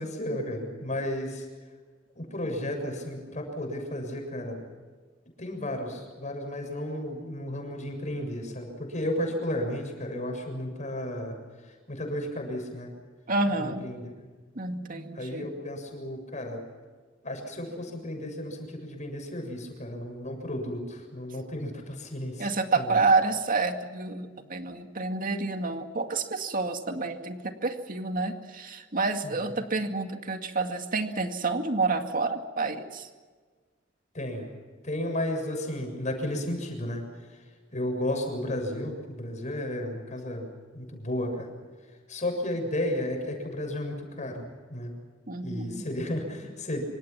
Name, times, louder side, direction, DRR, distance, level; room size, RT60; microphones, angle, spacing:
voice 1, 0.0-1.4 2.2-4.6 5.4-11.3 11.9-12.9 13.6-14.0 15.2-16.6 17.2-22.9 29.2-29.5 34.1-34.5 34.8-37.0 37.7-40.5 40.7-41.5 42.1-44.4 44.7-44.9 45.4-46.8, left 1 dB, 40° left, 4 dB, 7.0 m, -33 dB
voice 2, 13.3-13.9 14.6-15.5 22.4-33.1 45.3-45.8, right 3 dB, 45° right, 5 dB, 2.2 m, -29 dB
26.5 x 25.5 x 6.0 m, 1.5 s
head